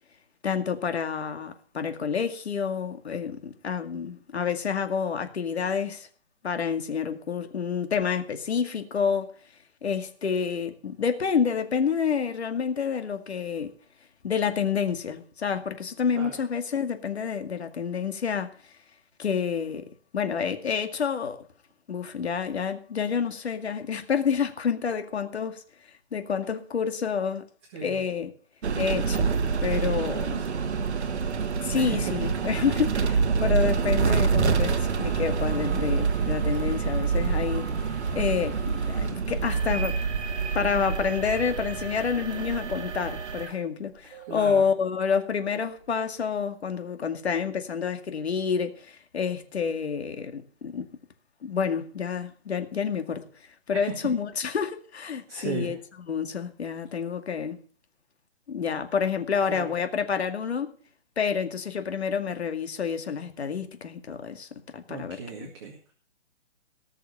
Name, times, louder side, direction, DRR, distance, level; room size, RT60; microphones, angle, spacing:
voice 1, 0.4-6.1 6.4-9.3 9.8-13.7 14.2-18.6 19.2-19.9 20.1-21.4 21.9-25.6 26.1-27.5 27.8-28.3 28.8-29.3 29.6-30.4 31.6-37.7 38.1-40.0 40.5-50.9 51.4-53.3 53.7-57.6 58.5-60.7 61.2-65.5, left 6 dB, 65° left, 2.2 m, -28 dB
sound 1, 28.6-43.4, right 5 dB, 65° right, 1.5 m, -27 dB
voice 2, 29.7-31.2 31.7-32.2 44.3-44.7 53.7-54.0 55.3-55.8 59.5-59.7 64.9-65.8, right 4 dB, 25° right, 2.0 m, -37 dB
sound 2, 31.4-31.5 32.2-32.4 33.6-44.4 45.0-45.1 45.7-45.8, right 6 dB, 50° right, 4.3 m, -43 dB
19.0 x 6.6 x 6.9 m
hypercardioid pair, 170°, 35 cm